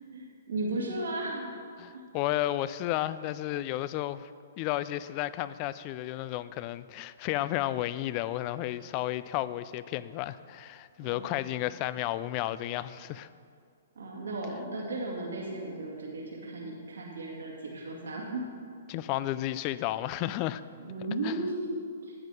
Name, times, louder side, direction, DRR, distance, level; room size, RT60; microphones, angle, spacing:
voice 1, 0.1-1.6 1.9-2.0 11.0-11.6 14.0-18.4 20.8-22.1, right 2 dB, 85° right, 2.3 m, -35 dB
voice 2, 1.8-4.3 4.6-13.3 18.9-20.6 21.2-21.4, left 14 dB, 35° left, 0.3 m, -32 dB
11.0 x 8.2 x 4.9 m
hypercardioid pair, 145°, 0 cm